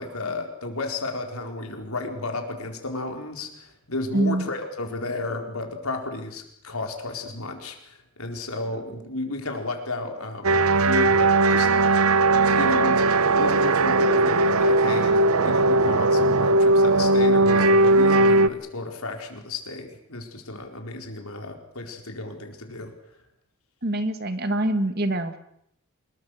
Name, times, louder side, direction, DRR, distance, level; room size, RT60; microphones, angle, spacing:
voice 1, 0.0-12.1 12.4-22.9, left 2 dB, 85° left, 3 dB, 4.5 m, -33 dB
voice 2, 4.1-4.5 23.8-25.4, right 1 dB, 45° right, 9 dB, 2.0 m, -25 dB
sound 1, 10.4-18.5, right 2 dB, 85° right, 0.9 m, -19 dB
26.0 x 22.0 x 6.7 m, 0.74 s
head